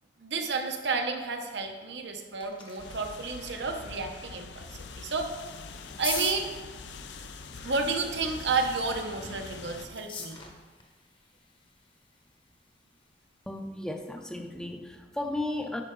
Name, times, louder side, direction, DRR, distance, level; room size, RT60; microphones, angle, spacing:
voice 1, 0.2-5.4 6.0-6.5 7.6-10.4, right 4 dB, 80° right, 4 dB, 0.9 m, -31 dB
sound 1, 1.9-14.5, left 5 dB, 30° left, 0.9 m, -45 dB
sound 2, 2.8-9.9, left 4 dB, 85° left, 0.5 m, -44 dB
voice 2, 13.5-15.8, left 1 dB, 5° left, 5 dB, 0.5 m, -34 dB
9.5 x 5.6 x 3.7 m, 1.4 s
head